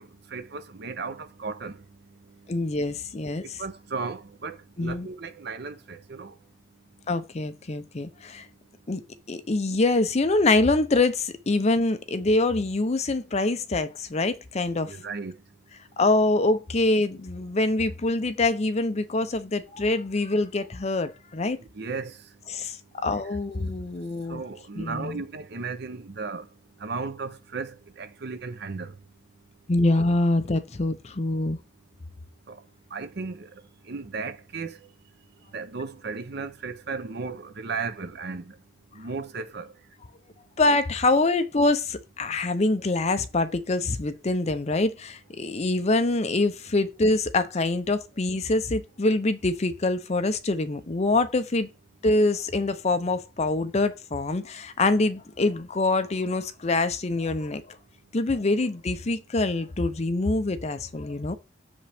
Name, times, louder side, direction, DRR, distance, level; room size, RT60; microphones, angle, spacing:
voice 1, 0.0-1.8 2.6-2.7 3.6-6.3 14.9-15.3 21.6-22.2 24.3-26.5 26.8-29.0 32.5-32.6 32.9-34.8 35.5-38.5 38.9-39.7, right 4 dB, 60° right, 0.7 m, -35 dB
voice 2, 2.5-3.6 4.8-5.1 7.1-8.5 8.9-9.0 9.3-14.9 16.0-21.6 22.5-24.4 24.8-25.2 29.7-31.6 40.6-51.7 52.0-57.8 58.1-61.3, left 2 dB, 35° left, 0.6 m, -25 dB
6.8 x 5.1 x 3.5 m
head